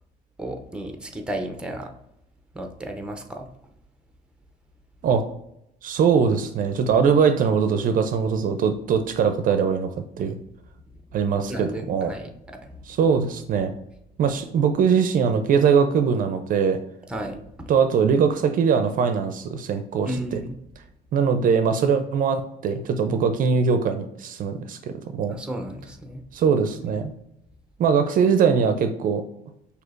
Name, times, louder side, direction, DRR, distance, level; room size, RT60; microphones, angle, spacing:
voice 1, 0.4-1.9 2.5-3.5 11.5-13.0 17.1-17.7 20.0-20.6 25.3-26.2 26.8-27.0, right 1 dB, 5° right, 4 dB, 0.6 m, -34 dB
voice 2, 5.8-9.9 10.2-10.4 11.1-12.1 12.8-13.7 14.2-16.8 17.7-20.4 21.1-25.4 26.3-27.1 27.8-29.2, right 6 dB, 55° right, 8 dB, 0.5 m, -21 dB
6.1 x 2.7 x 2.5 m, 0.79 s
cardioid pair, 110°, 17 cm